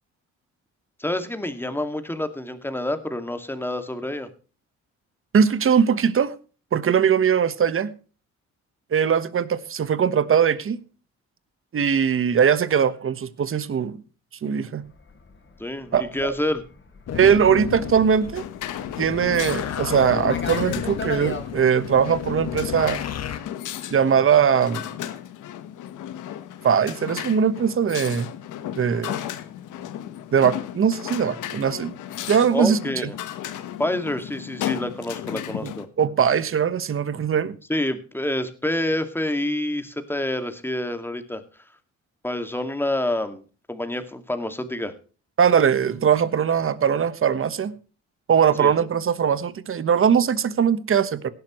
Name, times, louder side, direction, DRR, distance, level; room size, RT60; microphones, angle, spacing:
voice 1, 1.0-4.3 15.6-16.6 32.5-33.2 33.8-35.9 37.7-41.4 42.2-43.4 43.7-44.9 48.6-48.7, left 1 dB, 5° left, 8 dB, 2.1 m, -27 dB
voice 2, 5.3-6.3 6.7-7.9 8.9-10.8 11.7-14.0 14.4-14.8 15.9-16.4 17.1-18.4 19.0-23.0 23.9-24.8 26.6-28.3 28.8-29.2 30.3-31.9 32.3-32.8 35.6-35.7 36.0-37.6 45.4-47.7 48.3-51.3, right 7 dB, 45° right, 15 dB, 1.3 m, -20 dB
Fixed-wing aircraft airplane, 15.0-21.5, left 4 dB, 40° left, 3.8 m, -38 dB
sound 1, 17.1-23.4, left 9 dB, 55° left, 1.5 m, -32 dB
sound 2, 18.3-35.9, left 11 dB, 80° left, 1.3 m, -35 dB
17.5 x 12.0 x 3.1 m, 0.37 s
cardioid pair, 90°, 30 cm